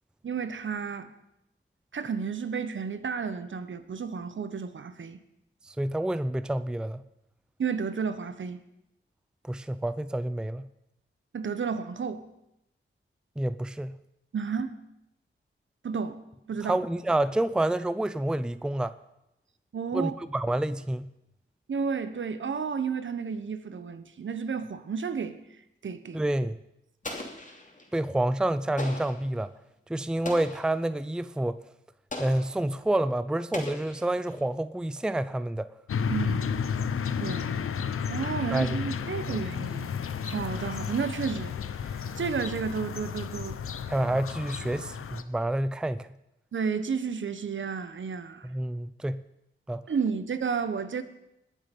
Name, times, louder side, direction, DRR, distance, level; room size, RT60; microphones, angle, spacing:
voice 1, 0.2-1.1 1.9-5.2 7.6-8.6 11.3-12.3 14.3-14.7 15.8-16.2 16.5-16.8 19.7-20.1 21.7-25.4 25.8-26.2 36.1-36.5 37.2-37.5 38.1-39.9 40.2-41.5 41.8-43.6 46.5-48.5 49.9-51.0, right 6 dB, 65° right, 1.1 m, -32 dB
voice 2, 5.7-7.0 9.4-10.7 13.4-14.0 16.6-18.9 19.9-21.1 26.1-26.6 27.9-29.5 29.9-31.6 32.2-35.7 38.5-38.8 39.3-39.4 43.9-46.1 48.4-49.2 49.7-49.8, right 1 dB, 5° right, 0.5 m, -28 dB
Explosion, 27.0-27.9 28.8-29.3 30.2-30.8 32.1-32.6 33.5-34.4, left 2 dB, 35° left, 2.7 m, -39 dB
sound 1, 35.9-45.2, left 7 dB, 80° left, 0.7 m, -32 dB
20.5 x 7.5 x 5.4 m
wide cardioid pair, 85°, 21 cm